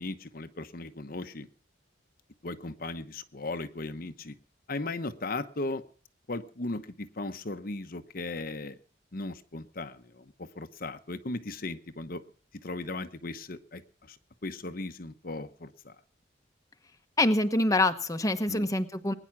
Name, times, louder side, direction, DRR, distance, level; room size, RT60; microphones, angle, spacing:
voice 1, 0.0-1.5 2.4-4.4 4.7-5.8 6.3-8.8 9.1-12.2 12.6-13.8 14.1-14.2 14.4-15.9 18.5-18.7, left 2 dB, 50° left, 9 dB, 1.0 m, -37 dB
voice 2, 17.2-19.1, left 2 dB, 20° left, 7 dB, 1.0 m, -25 dB
21.0 x 10.0 x 6.0 m, 0.42 s
head